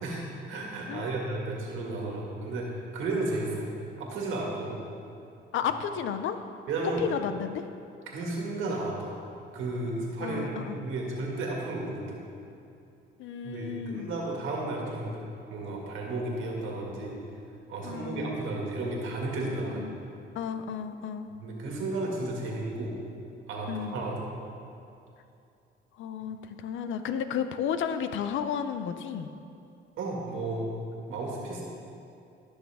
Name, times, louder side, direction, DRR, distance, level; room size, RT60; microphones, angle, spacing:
voice 1, 0.0-2.7 2.9-3.6 4.0-4.7 6.7-7.1 8.1-9.1 9.5-12.2 13.4-15.2 15.5-17.2 17.7-19.9 21.4-23.0 23.5-24.2 30.0-30.6 31.1-31.6, right 2 dB, 85° right, -2 dB, 2.0 m, -33 dB
voice 2, 0.9-1.3 5.5-6.4 7.0-7.6 10.2-10.8 13.2-14.1 17.8-18.3 19.6-20.0 20.3-21.3 23.7-24.0 26.0-29.3, left 8 dB, 75° left, 9 dB, 0.5 m, -33 dB
14.0 x 6.4 x 3.5 m, 2.6 s
cardioid pair, 90°, 20 cm